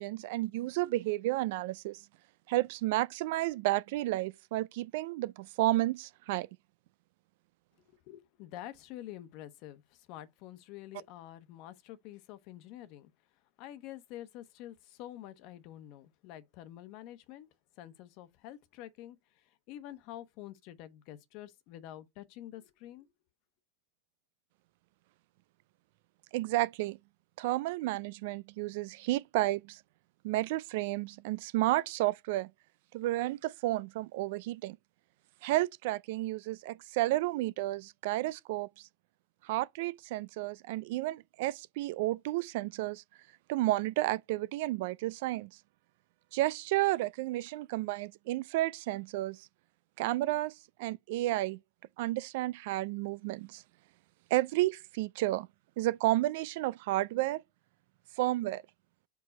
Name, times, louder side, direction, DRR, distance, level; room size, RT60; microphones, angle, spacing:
voice 1, 0.0-2.0 2.5-6.5 26.3-27.0 27.4-29.8 30.2-32.5 32.9-34.8 35.4-38.9 39.4-43.0 43.5-45.5 46.3-49.5 50.0-51.6 52.0-53.6 54.3-55.5 55.8-57.4 58.2-58.6, right 17 dB, 65° right, 0.3 m, -31 dB
voice 2, 7.9-13.1 13.6-17.5 17.8-23.1, left 13 dB, 55° left, 1.0 m, -48 dB
4.8 x 4.6 x 5.3 m
hypercardioid pair, 115°, 0 cm